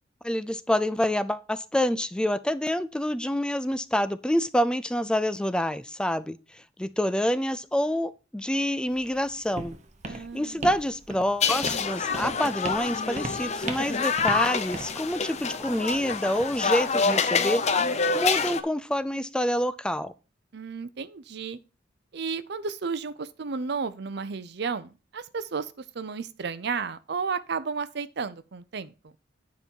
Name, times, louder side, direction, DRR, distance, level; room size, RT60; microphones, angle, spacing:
voice 1, 0.2-9.8 10.1-17.6 18.1-20.1, equal, 5° left, 0.3 m, -27 dB
Walk footsteps, 8.9-16.8, right 2 dB, 40° right, 1.1 m, -40 dB
voice 2, 10.1-10.6 20.5-21.6 22.1-29.1, right 5 dB, 65° right, 0.6 m, -33 dB
sound 1, 11.4-18.6, left 5 dB, 40° left, 0.7 m, -27 dB
9.5 x 5.2 x 4.5 m
head